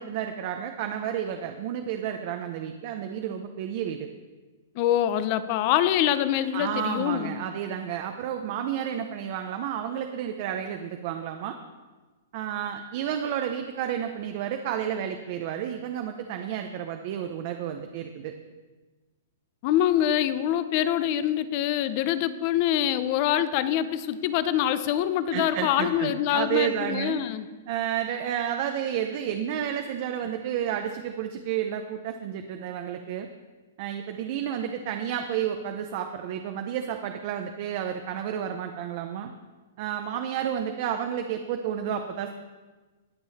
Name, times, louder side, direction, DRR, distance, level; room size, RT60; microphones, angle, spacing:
voice 1, 0.0-4.1 6.5-11.6 12.3-18.3 25.3-27.2 27.7-33.3 33.8-39.3 39.8-42.3, right 9 dB, 40° right, 5 dB, 0.7 m, -31 dB
voice 2, 4.8-7.3 19.6-27.5, left 11 dB, 35° left, 13 dB, 0.6 m, -25 dB
20.5 x 6.9 x 4.2 m, 1.3 s
hypercardioid pair, 165°, 0 cm